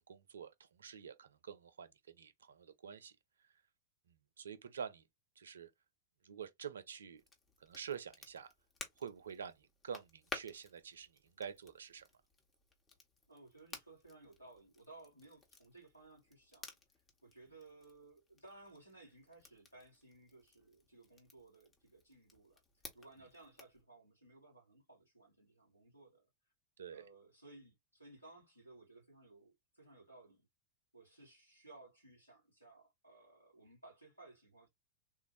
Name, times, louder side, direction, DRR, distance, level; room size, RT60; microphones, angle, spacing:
voice 1, 0.0-3.2 4.1-5.0 5.4-5.7 6.2-7.2 7.6-8.5 9.0-12.1 26.8-27.0, right 7 dB, 70° right, 0.5 m, -48 dB
Crackle, 7.2-23.8, left 3 dB, 20° left, 1.2 m, -55 dB
voice 2, 13.3-16.8 17.2-22.6 22.9-26.3 26.9-30.4 30.9-34.7, right 2 dB, 90° left, 2.4 m, -59 dB
3.5 x 2.6 x 3.0 m
figure-of-eight pair, 90°, 0 cm